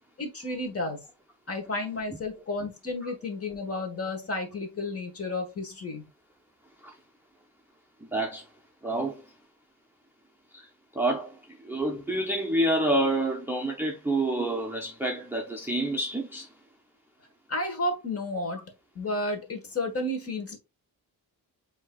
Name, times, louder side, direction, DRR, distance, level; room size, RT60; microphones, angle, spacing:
voice 1, 0.2-1.0 1.5-6.0 17.5-18.6 18.9-20.6, left 2 dB, 40° left, 1.4 m, -32 dB
voice 2, 8.1-8.4 8.8-9.2 10.5-10.7 10.9-16.5, right 1 dB, 5° right, 0.6 m, -28 dB
7.4 x 2.9 x 2.3 m
wide cardioid pair, 150°, 38 cm